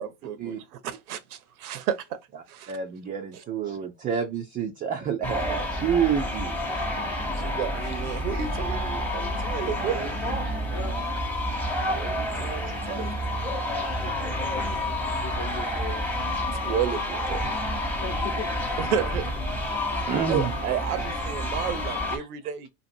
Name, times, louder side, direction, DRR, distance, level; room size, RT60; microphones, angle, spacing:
voice 1, 0.0-2.2 2.5-2.7 3.3-3.4 7.4-10.1 11.9-13.1 16.6-17.4 18.8-19.4 20.3-22.7, right 8 dB, 80° right, 0.7 m, -32 dB
voice 2, 2.7-6.6 12.7-12.9 19.7-19.8 20.1-22.0, right 7 dB, 20° right, 0.3 m, -29 dB
sound 1, 5.2-22.2, left 1 dB, 5° left, 0.8 m, -29 dB
voice 3, 13.7-16.0 18.0-18.5, left 6 dB, 35° left, 0.9 m, -39 dB
2.7 x 2.5 x 2.6 m
hypercardioid pair, 90°, 44 cm